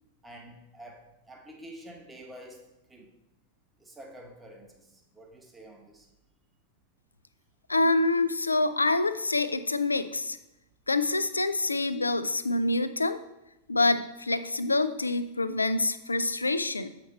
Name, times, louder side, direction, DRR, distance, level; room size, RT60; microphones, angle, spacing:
voice 1, 0.2-2.6 2.9-3.1 3.8-6.1, right 1 dB, 10° right, 1 dB, 1.2 m, -48 dB
voice 2, 7.7-10.4 10.9-13.2 13.7-16.9, left 2 dB, 80° left, 12 dB, 0.4 m, -26 dB
7.7 x 5.2 x 4.0 m, 0.91 s
figure-of-eight pair, 90°, 0 cm